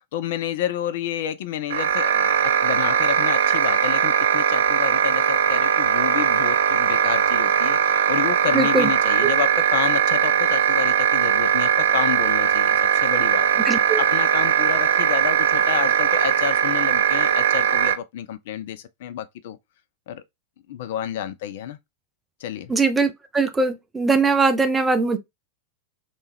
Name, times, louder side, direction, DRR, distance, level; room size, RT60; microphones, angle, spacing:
voice 1, 0.1-2.3 2.6-19.6 20.1-20.2 20.7-21.8 22.4-22.7, left 10 dB, 55° left, 0.3 m, -29 dB
sound 1, 1.7-18.0, right 9 dB, 60° right, 0.3 m, -20 dB
voice 2, 8.5-8.9 13.7-14.0 22.7-25.2, right 3 dB, 15° right, 0.5 m, -21 dB
3.2 x 2.6 x 3.3 m
figure-of-eight pair, 90°, 0 cm